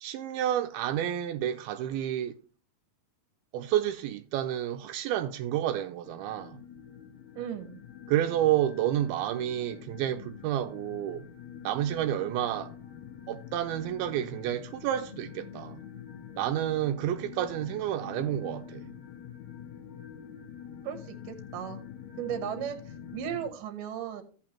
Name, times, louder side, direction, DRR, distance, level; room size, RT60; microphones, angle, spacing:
voice 1, 0.0-2.4 3.5-6.6 8.1-11.3 11.6-12.7 13.3-15.8 16.4-18.8, right 12 dB, 90° right, 2.5 m, -30 dB
sound 1, 6.0-23.5, left 8 dB, 75° left, 1.7 m, -46 dB
voice 2, 7.3-7.8 20.8-21.8 22.2-24.2, right 9 dB, 70° right, 2.5 m, -36 dB
15.0 x 5.7 x 2.9 m
omnidirectional pair, 4.3 m